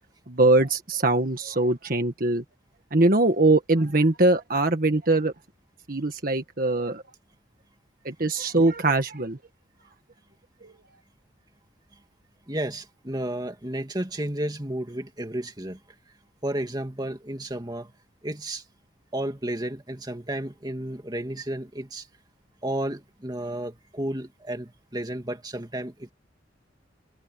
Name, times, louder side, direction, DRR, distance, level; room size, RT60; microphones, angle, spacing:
voice 1, 0.3-2.4 2.9-5.3 5.9-7.0 8.0-9.4 10.6-10.7, right 2 dB, 50° right, 1.6 m, -22 dB
voice 2, 12.5-15.8 16.4-17.9 18.2-18.6 19.1-22.1 22.6-26.1, right 1 dB, 20° right, 2.7 m, -32 dB
head